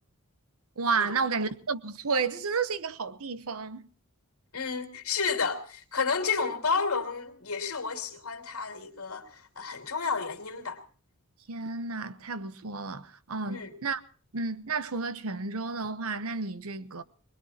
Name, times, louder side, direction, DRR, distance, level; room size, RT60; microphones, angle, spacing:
voice 1, 0.8-3.9 11.5-14.0 14.3-17.0, right 4 dB, 75° right, 1.0 m, -31 dB
voice 2, 4.5-10.8 13.5-13.7, left 5 dB, 80° left, 2.9 m, -31 dB
22.5 x 21.0 x 2.9 m
head